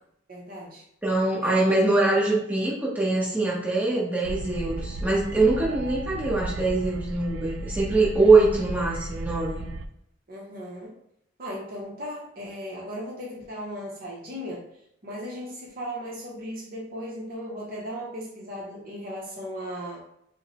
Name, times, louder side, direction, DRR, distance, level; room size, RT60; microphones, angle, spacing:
voice 1, 0.3-0.9 1.4-1.5 10.3-10.9 11.4-14.6 15.0-20.0, equal, 45° right, -3 dB, 0.8 m, -36 dB
voice 2, 1.0-9.7, right 3 dB, 10° right, -6 dB, 1.0 m, -23 dB
sound 1, 4.2-9.9, right 2 dB, 80° right, 0.3 m, -34 dB
5.2 x 2.1 x 3.1 m, 0.77 s
head